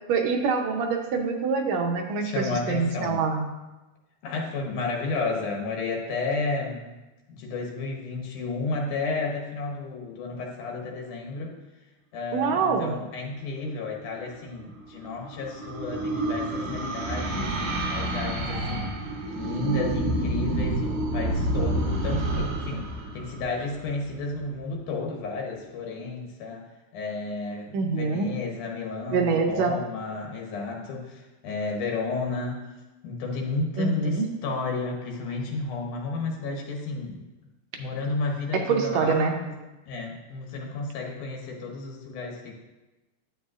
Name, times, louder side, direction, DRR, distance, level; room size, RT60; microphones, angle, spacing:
voice 1, 0.1-3.5 12.3-13.0 27.7-28.3 29.1-29.8 33.8-34.3 38.5-39.3, right 5 dB, 75° right, 4 dB, 1.9 m, -25 dB
voice 2, 2.2-3.2 4.2-6.9 7.3-11.6 12.1-19.0 19.3-26.7 26.9-32.6 33.0-37.3 37.8-39.5 39.9-42.5, left 3 dB, 90° left, 0 dB, 2.5 m, -32 dB
sound 1, 14.6-24.2, right 1 dB, 90° right, 2.7 m, -29 dB
9.6 x 7.9 x 2.4 m, 1.1 s
omnidirectional pair, 3.4 m